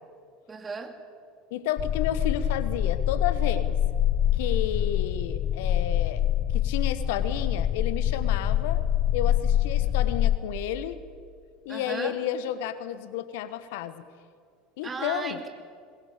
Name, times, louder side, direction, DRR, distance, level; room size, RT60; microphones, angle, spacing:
voice 1, 0.5-1.0 11.7-12.2 14.8-15.5, right 4 dB, 25° right, 6 dB, 2.8 m, -36 dB
voice 2, 1.5-3.8 4.3-6.2 6.5-8.8 9.1-11.0 11.6-14.0 14.8-15.4, left 10 dB, 65° left, 13 dB, 1.2 m, -32 dB
sound 1, 1.8-10.4, left 11 dB, 45° left, 0.7 m, -25 dB
sound 2, 2.0-3.1 3.6-4.7 5.2-6.3 6.8-7.9 8.4-9.5 10.0-11.1, right 3 dB, 60° right, 3.3 m, -44 dB
21.5 x 21.0 x 8.6 m, 2.2 s
figure-of-eight pair, 75°, 0 cm